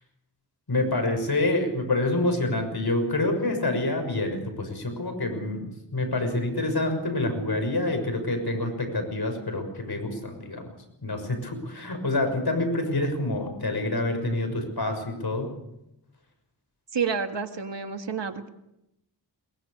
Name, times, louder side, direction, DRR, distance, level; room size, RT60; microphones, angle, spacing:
voice 1, 0.7-10.7 11.0-15.5, left 2 dB, 60° left, 5 dB, 6.4 m, -27 dB
voice 2, 16.9-18.5, right 6 dB, 75° right, 6 dB, 2.1 m, -29 dB
22.5 x 20.5 x 6.8 m, 0.84 s
cardioid pair, 50°, 43 cm